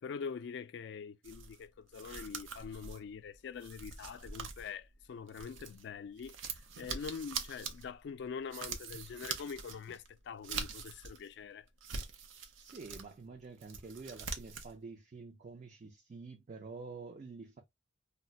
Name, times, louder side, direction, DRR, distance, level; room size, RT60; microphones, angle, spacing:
voice 1, 0.0-11.7, left 6 dB, 60° left, 0.3 m, -44 dB
sound 1, 1.2-5.9 6.2-11.3 11.7-13.1 13.4-14.7, right 5 dB, 85° right, 0.5 m, -44 dB
voice 2, 12.6-17.6, right 4 dB, 40° right, 0.4 m, -48 dB
2.4 x 2.1 x 3.9 m
head